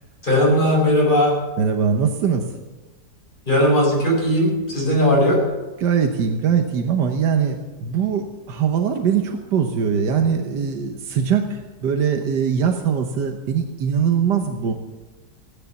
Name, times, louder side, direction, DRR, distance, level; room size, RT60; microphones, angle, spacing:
voice 1, 0.2-1.4 3.5-5.4, equal, 30° left, -3 dB, 5.8 m, -18 dB
voice 2, 1.6-2.5 5.8-14.7, right 7 dB, 90° right, 4 dB, 1.7 m, -21 dB
15.5 x 10.5 x 7.1 m, 1.2 s
omnidirectional pair, 1.8 m